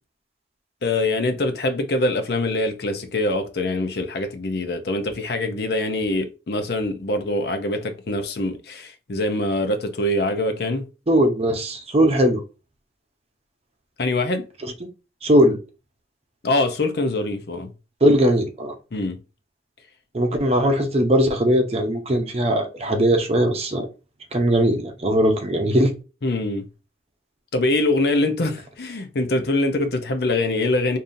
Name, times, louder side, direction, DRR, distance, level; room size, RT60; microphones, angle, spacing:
voice 1, 0.8-10.8 14.0-14.5 16.4-17.7 18.9-19.2 26.2-26.7 27.5-31.0, left 2 dB, 60° left, 0.6 m, -24 dB
voice 2, 11.1-12.4 14.8-14.9 15.2-15.6 18.0-18.7 20.1-23.9 24.3-25.9, equal, 35° right, 0.7 m, -19 dB
5.3 x 2.7 x 2.6 m
head